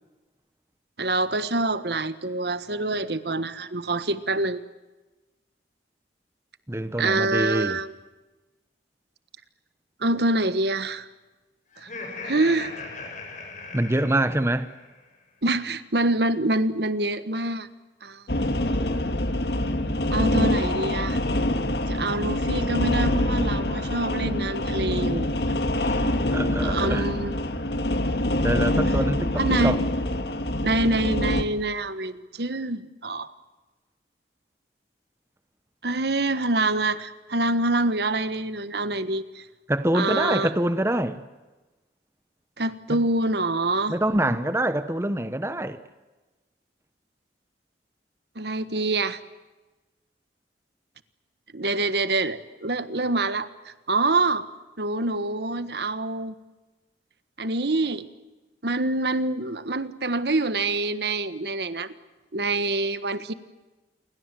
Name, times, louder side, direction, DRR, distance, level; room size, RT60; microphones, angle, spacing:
voice 1, 1.0-4.6 7.0-7.9 10.0-11.1 11.8-11.9 12.2-12.7 15.4-17.7 18.0-18.2 20.1-21.2 21.9-25.5 26.6-27.4 29.4-29.7 30.6-33.3 35.8-39.5 39.9-40.5 42.6-43.9 48.3-49.2 51.5-54.5 54.8-56.3 57.4-58.1 58.6-61.9 62.3-63.3, right 2 dB, 65° right, 1.4 m, -26 dB
voice 2, 6.7-7.8 13.7-14.7 25.7-26.0 26.3-27.1 28.4-29.8 39.7-41.2 42.9-43.0 43.9-45.8, right 1 dB, 15° right, 1.1 m, -25 dB
Laughter, 11.7-15.0, left 3 dB, 45° left, 6.7 m, -39 dB
sound 1, 18.3-31.4, left 1 dB, 65° left, 2.1 m, -25 dB
28.5 x 23.0 x 7.7 m
head